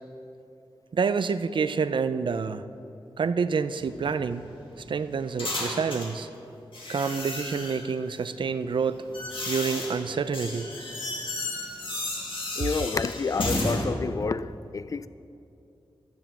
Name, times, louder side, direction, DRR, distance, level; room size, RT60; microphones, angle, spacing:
voice 1, 0.9-2.7 3.2-4.5 4.8-6.3 6.9-9.0 9.5-10.7, right 5 dB, 60° right, 0.5 m, -28 dB
sound 1, 3.7-6.2 6.7-7.9 8.7-13.8, left 2 dB, 65° left, 2.2 m, -33 dB
voice 2, 12.6-15.1, left 4 dB, 35° left, 0.3 m, -29 dB
12.5 x 9.0 x 7.1 m
wide cardioid pair, 125°, 9 cm